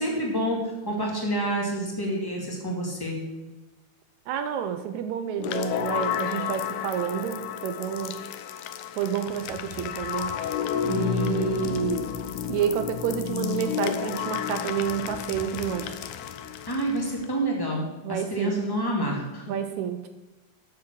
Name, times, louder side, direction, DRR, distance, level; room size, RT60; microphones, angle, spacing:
voice 1, 0.0-3.2 16.7-19.4, right 1 dB, 10° left, -2 dB, 1.5 m, -28 dB
voice 2, 4.3-8.2 9.0-10.3 10.8-12.1 12.5-16.0 18.0-18.6 19.5-20.1, right 9 dB, 75° right, 8 dB, 1.8 m, -29 dB
sound 1, 5.4-17.3, left 8 dB, 75° left, 2.0 m, -31 dB
9.4 x 6.7 x 6.4 m, 1.1 s
omnidirectional pair, 3.7 m